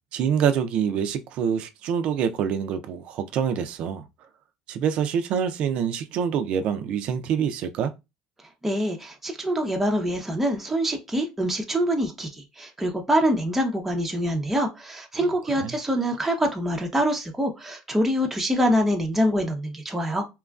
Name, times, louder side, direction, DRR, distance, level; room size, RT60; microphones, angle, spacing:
voice 1, 0.1-4.0 4.7-7.9 15.2-15.8, right 8 dB, 60° right, 0.4 m, -26 dB
voice 2, 8.6-20.3, equal, 10° right, 0.6 m, -25 dB
2.9 x 2.4 x 2.3 m
supercardioid pair, 100°, 2 cm